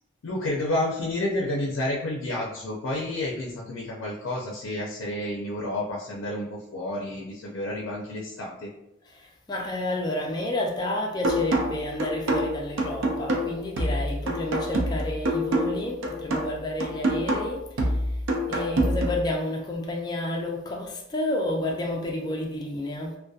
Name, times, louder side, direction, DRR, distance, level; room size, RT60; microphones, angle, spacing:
voice 1, 0.2-8.7, left 1 dB, 85° left, 0.4 m, -30 dB
voice 2, 9.1-18.2 18.5-23.2, left 1 dB, 20° left, 0.3 m, -30 dB
sound 1, 11.2-19.2, right 1 dB, 75° right, 0.4 m, -26 dB
2.6 x 2.1 x 2.3 m
head